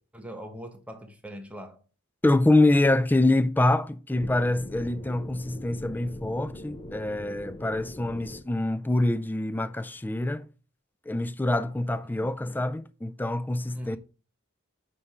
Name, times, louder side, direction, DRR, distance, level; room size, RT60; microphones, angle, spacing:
voice 1, 0.1-1.8 12.0-12.3 13.7-14.0, equal, 5° right, 1.1 m, -41 dB
voice 2, 2.2-10.5 11.1-14.0, left 2 dB, 10° left, 0.3 m, -25 dB
sound 1, 4.1-8.4, left 1 dB, 25° left, 0.7 m, -42 dB
9.3 x 3.3 x 5.5 m
head